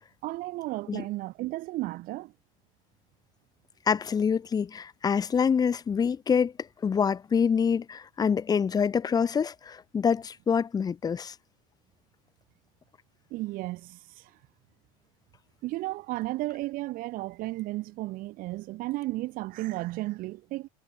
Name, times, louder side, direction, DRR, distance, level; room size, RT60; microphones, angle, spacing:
voice 1, 0.2-2.3 13.3-14.3 15.6-20.7, right 19 dB, 50° right, 5.1 m, -34 dB
voice 2, 3.9-6.5 6.8-11.3, left 6 dB, 20° left, 2.0 m, -26 dB
supercardioid pair, 130°, 18 cm